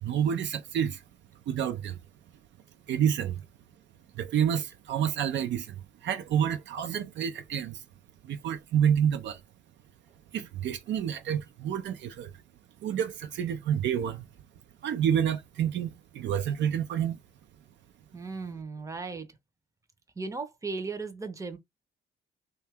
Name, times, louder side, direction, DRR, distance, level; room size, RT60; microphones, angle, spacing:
voice 1, 0.0-1.0 1.5-2.0 2.9-3.4 4.1-7.8 8.2-9.4 10.3-12.3 12.8-14.3 14.8-17.2, right 9 dB, 65° right, 0.4 m, -29 dB
voice 2, 18.1-19.3 20.2-21.6, right 4 dB, 15° right, 0.6 m, -36 dB
2.7 x 2.3 x 3.3 m
cardioid pair, 90°, 20 cm